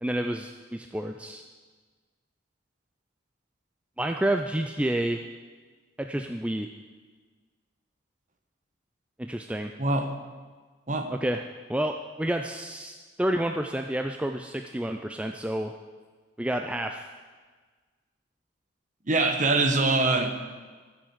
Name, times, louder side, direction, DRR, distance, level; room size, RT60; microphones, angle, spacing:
voice 1, 0.0-1.4 4.0-5.2 6.0-6.7 9.2-9.7 11.1-11.4 11.7-12.9 13.2-15.7 16.4-17.1, right 1 dB, 5° right, 5 dB, 0.4 m, -29 dB
voice 2, 9.8-10.1 10.9-11.1 19.1-20.3, right 3 dB, 40° right, 5 dB, 1.2 m, -23 dB
13.5 x 7.2 x 7.9 m, 1.4 s
head